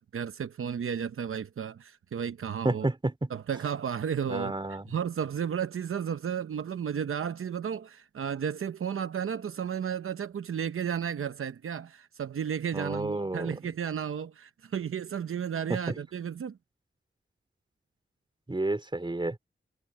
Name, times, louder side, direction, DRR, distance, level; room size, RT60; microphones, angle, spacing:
voice 1, 0.0-2.9 3.3-16.6, right 8 dB, 85° right, 0.8 m, -33 dB
voice 2, 2.6-3.3 4.3-4.9 12.7-13.6 15.7-16.0 18.5-19.4, right 2 dB, 25° right, 3.5 m, -30 dB
wide cardioid pair, 105°, 21 cm